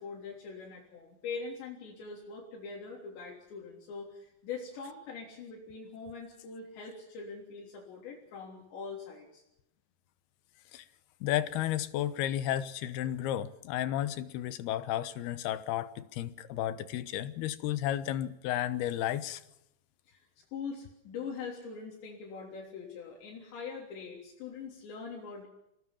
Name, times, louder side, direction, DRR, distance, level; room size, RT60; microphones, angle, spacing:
voice 1, 0.0-9.4 20.1-25.5, left 5 dB, 90° left, 5.7 m, -43 dB
voice 2, 11.2-19.4, left 12 dB, 75° left, 2.9 m, -33 dB
28.5 x 17.5 x 7.3 m
omnidirectional pair, 4.9 m